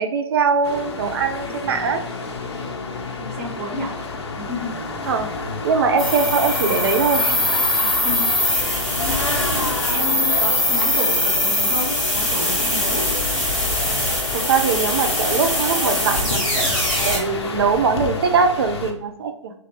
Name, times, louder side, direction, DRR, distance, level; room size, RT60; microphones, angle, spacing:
voice 1, 0.0-2.0 5.1-5.3 5.6-7.4 14.5-16.7 17.0-19.5, right 5 dB, 50° right, 6 dB, 0.6 m, -21 dB
sound 1, 0.6-18.9, left 4 dB, 55° left, 0.9 m, -30 dB
voice 2, 3.2-4.0 4.4-4.7 5.0-5.2 7.8-8.6 9.0-13.1, left 1 dB, 25° right, -1 dB, 1.2 m, -31 dB
sound 2, 6.0-17.2, left 1 dB, ahead, 1.6 m, -22 dB
4.6 x 3.4 x 3.0 m, 0.86 s
figure-of-eight pair, 130°, 16 cm